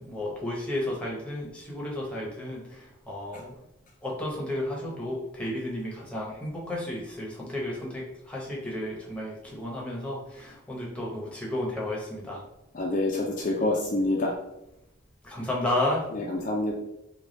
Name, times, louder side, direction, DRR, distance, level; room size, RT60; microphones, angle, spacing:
voice 1, 0.0-3.6 4.0-12.5 15.2-16.1, left 1 dB, 5° left, -4 dB, 0.8 m, -32 dB
voice 2, 12.7-14.3 16.1-16.7, left 2 dB, 40° left, -1 dB, 0.4 m, -27 dB
3.3 x 2.3 x 3.8 m, 0.86 s
head